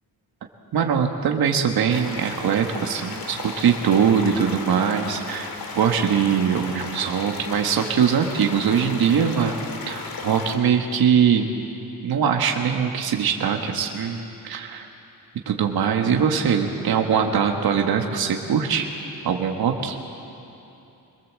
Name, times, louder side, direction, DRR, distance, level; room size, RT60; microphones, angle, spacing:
voice 1, 0.7-11.5 12.0-14.9 15.4-18.9 19.2-20.0, right 7 dB, 70° right, 3 dB, 1.6 m, -22 dB
sound 1, 1.9-10.6, left 4 dB, 70° left, 2.5 m, -35 dB
23.5 x 21.0 x 7.5 m, 2.8 s
wide cardioid pair, 145°, 37 cm